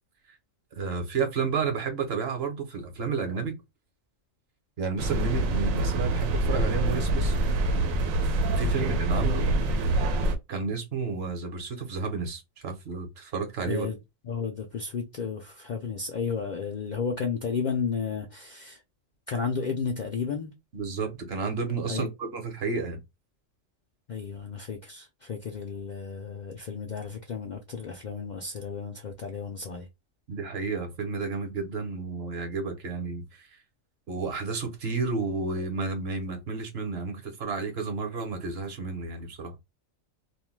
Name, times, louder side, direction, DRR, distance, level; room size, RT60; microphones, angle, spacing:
voice 1, 0.7-3.6 4.8-7.3 8.6-9.5 10.5-13.9 20.7-23.0 30.3-33.5 34.1-39.6, right 4 dB, 55° right, 1.0 m, -31 dB
sound 1, 5.0-10.4, right 2 dB, 85° right, 1.0 m, -25 dB
voice 2, 8.7-9.4 13.7-14.0 14.2-18.8 19.3-20.5 21.9-22.1 24.1-29.9, left 5 dB, 85° left, 0.4 m, -33 dB
2.5 x 2.1 x 3.1 m
omnidirectional pair, 1.4 m